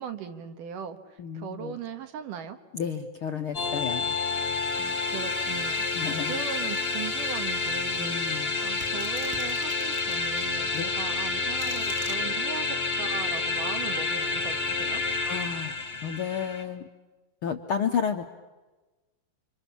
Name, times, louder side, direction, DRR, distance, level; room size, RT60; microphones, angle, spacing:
voice 1, 0.0-2.6 4.7-8.1 8.6-12.7 13.0-15.0, right 7 dB, 75° right, 7 dB, 3.2 m, -39 dB
voice 2, 1.2-1.8 2.7-4.1 5.9-6.4 8.0-8.5 10.7-10.8 15.2-15.8 16.0-16.9 17.4-18.2, left 7 dB, 65° left, 5 dB, 1.4 m, -31 dB
sound 1, 3.5-16.6, left 4 dB, 25° left, 1.5 m, -29 dB
sound 2, 8.8-10.5 11.2-12.2, equal, 5° right, 1.8 m, -42 dB
29.5 x 27.0 x 7.2 m, 1.2 s
omnidirectional pair, 3.8 m